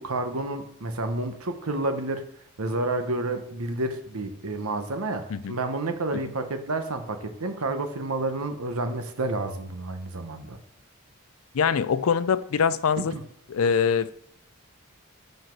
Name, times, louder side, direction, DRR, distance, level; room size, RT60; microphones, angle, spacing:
voice 1, 0.0-2.2 2.6-10.6 13.0-13.2, right 2 dB, 85° right, 1.0 m, -30 dB
voice 2, 11.5-13.1 13.5-14.1, left 6 dB, 80° left, 0.4 m, -23 dB
5.7 x 5.5 x 5.9 m
head